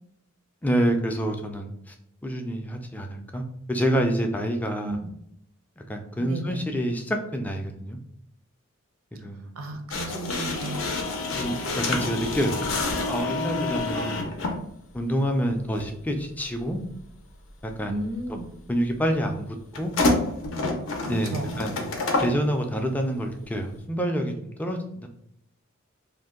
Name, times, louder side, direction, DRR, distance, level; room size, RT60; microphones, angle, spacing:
voice 1, 0.6-1.9 2.2-3.4 3.7-5.0 5.9-8.0 9.1-9.5 11.3-12.6 13.0-14.3 14.9-16.8 17.8-18.1 18.7-19.5 19.8-19.9 21.1-21.9 22.2-25.1, equal, 10° left, 3 dB, 0.3 m, -27 dB
voice 2, 4.8-5.1 6.2-6.6 9.5-10.9 13.9-14.3 17.9-18.5 21.0-21.5, right 1 dB, 80° right, 5 dB, 0.5 m, -33 dB
sound 1, 9.9-14.6 15.7-15.9 19.7-22.4, left 2 dB, 70° left, 0.5 m, -28 dB
2.6 x 2.2 x 3.6 m, 0.74 s
head